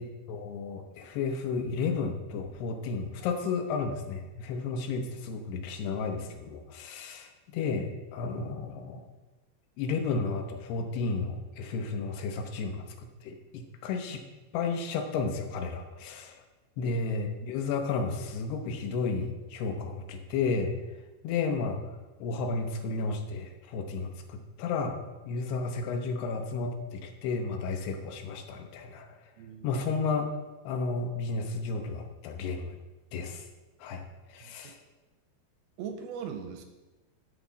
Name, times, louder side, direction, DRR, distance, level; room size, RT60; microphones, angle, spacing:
voice 1, 0.0-9.1 9.8-14.2 14.5-16.4 16.8-20.7 21.2-21.8 22.2-25.0 25.3-29.1 29.6-30.3 30.6-32.8 33.1-33.4 33.8-34.0 34.3-34.8, left 4 dB, 75° left, 4 dB, 2.9 m, -32 dB
voice 2, 29.4-29.8 34.4-34.5 35.8-36.6, right 7 dB, 75° right, 5 dB, 2.4 m, -40 dB
13.0 x 7.2 x 4.1 m, 1.1 s
omnidirectional pair, 4.9 m